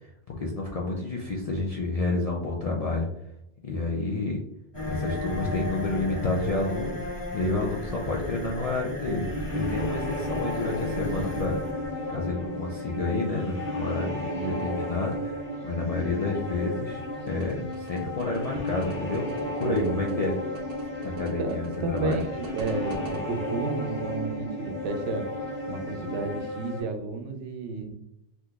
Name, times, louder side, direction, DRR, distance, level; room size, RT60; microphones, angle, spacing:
voice 1, 0.0-3.1 3.6-4.4 4.9-7.0 7.3-11.6 12.1-14.1 14.4-20.4 21.0-22.2, left 3 dB, 55° left, -2 dB, 0.4 m, -29 dB
sound 1, 4.7-14.4, left 1 dB, 30° left, 1.0 m, -35 dB
sound 2, 9.1-26.8, left 1 dB, 80° left, 1.5 m, -34 dB
voice 2, 14.0-14.7 19.6-20.1 21.4-25.3 25.7-28.0, right 3 dB, 85° right, 6 dB, 0.9 m, -32 dB
sound 3, 17.3-23.2, right 4 dB, 60° right, 0.9 m, -44 dB
3.6 x 2.8 x 2.3 m, 0.80 s
omnidirectional pair, 1.2 m